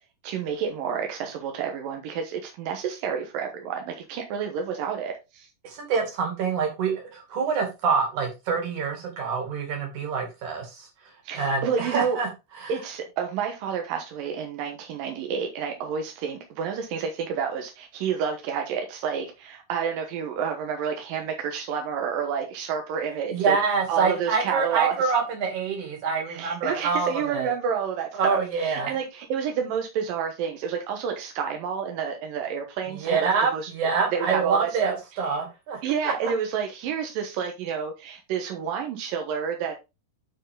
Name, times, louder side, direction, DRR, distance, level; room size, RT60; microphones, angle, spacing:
voice 1, 0.2-5.5 11.2-12.2 12.7-23.6 23.9-25.1 26.3-33.3 33.5-33.7 34.1-35.0 35.8-39.7, right 7 dB, 90° right, 2.8 m, -29 dB
voice 2, 5.6-10.9 11.3-12.3 12.6-12.7 23.3-27.5 28.1-28.9 33.0-36.1, right 5 dB, 65° right, 3.9 m, -26 dB
9.7 x 4.7 x 3.7 m
omnidirectional pair, 3.9 m